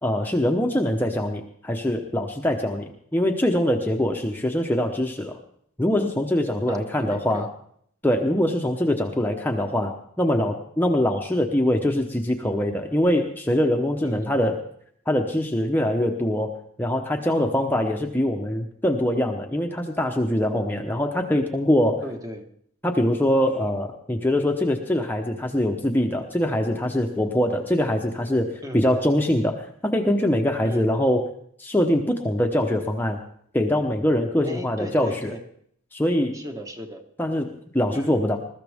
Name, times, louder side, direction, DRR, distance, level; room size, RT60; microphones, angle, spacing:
voice 1, 0.0-5.4 5.8-7.5 8.0-14.6 15.1-22.0 22.8-31.2 31.6-33.2 33.5-35.3 35.9-36.4 37.2-38.4, left 1 dB, 10° left, 2 dB, 1.0 m, -23 dB
voice 2, 6.7-7.5 14.0-14.4 22.0-22.5 28.6-28.9 30.6-30.9 34.4-35.4 36.3-37.0 37.9-38.3, equal, 15° right, 4 dB, 1.4 m, -36 dB
21.5 x 13.5 x 3.6 m, 0.65 s
head